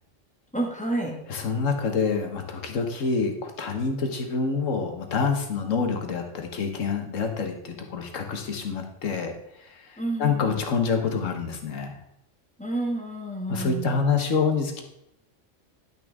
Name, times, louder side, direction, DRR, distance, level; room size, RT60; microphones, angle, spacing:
voice 1, 0.5-1.1 10.0-10.6 12.6-14.0, right 2 dB, 5° left, 0 dB, 1.5 m, -30 dB
voice 2, 1.3-9.3 9.7-11.9 13.5-14.8, left 5 dB, 85° left, 4 dB, 1.5 m, -27 dB
10.5 x 6.2 x 3.5 m, 0.78 s
omnidirectional pair, 1.3 m